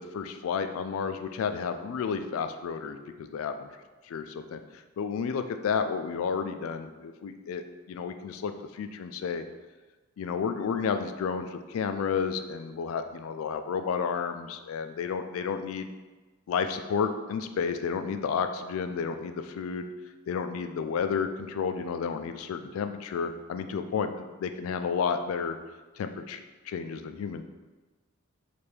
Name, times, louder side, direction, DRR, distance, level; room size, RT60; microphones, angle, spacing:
voice 1, 0.0-3.7 4.1-4.6 5.0-7.6 7.9-9.4 10.2-15.9 16.5-19.9 20.3-24.1 24.4-25.6 26.0-27.4, left 6 dB, 70° left, 9 dB, 0.3 m, -31 dB
3.3 x 2.5 x 4.4 m, 1.3 s
head